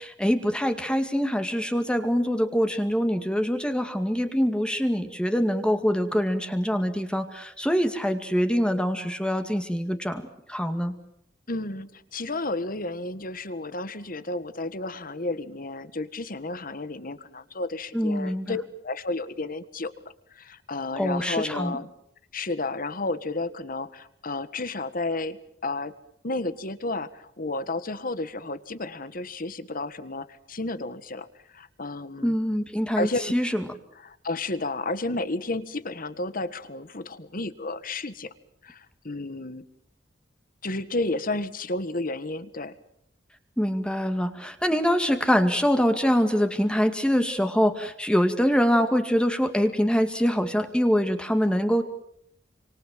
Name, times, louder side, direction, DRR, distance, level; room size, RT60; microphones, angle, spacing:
voice 1, 0.0-10.2 10.5-10.9 17.9-18.6 21.0-21.8 32.2-33.6 43.6-51.8, equal, 5° left, 7 dB, 2.2 m, -24 dB
voice 2, 11.5-19.9 20.3-21.9 22.3-25.9 26.2-31.3 31.5-32.3 33.0-33.4 34.0-38.3 38.6-39.6 40.6-42.7, left 2 dB, 50° left, 14 dB, 1.6 m, -32 dB
28.0 x 26.0 x 7.6 m, 0.72 s
head